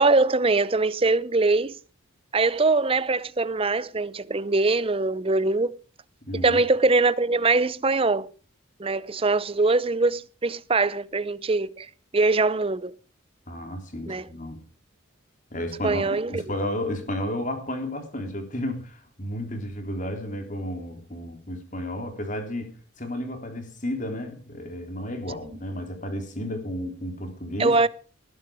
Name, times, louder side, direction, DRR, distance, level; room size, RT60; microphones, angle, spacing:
voice 1, 0.0-1.7 2.3-5.7 6.4-8.3 8.8-11.9 12.1-13.0 14.1-14.3 15.8-16.4 27.6-27.9, right 3 dB, 25° right, 0.6 m, -22 dB
voice 2, 6.2-6.6 13.5-14.6 15.5-27.8, left 1 dB, 40° left, 3.6 m, -32 dB
20.0 x 11.0 x 4.9 m
head